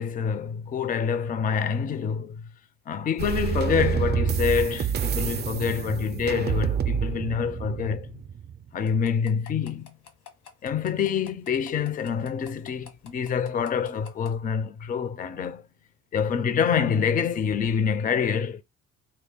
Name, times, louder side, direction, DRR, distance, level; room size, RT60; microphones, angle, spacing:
voice 1, 0.0-2.5 2.9-8.1 8.7-9.9 10.6-15.6 16.1-18.6, left 7 dB, 30° left, 0.4 m, -26 dB
sound 1, 3.2-8.7, right 7 dB, 35° right, 0.4 m, -28 dB
sound 2, 8.9-14.3, left 8 dB, 75° left, 1.3 m, -47 dB
4.3 x 2.1 x 3.4 m
cardioid pair, 90°, 30 cm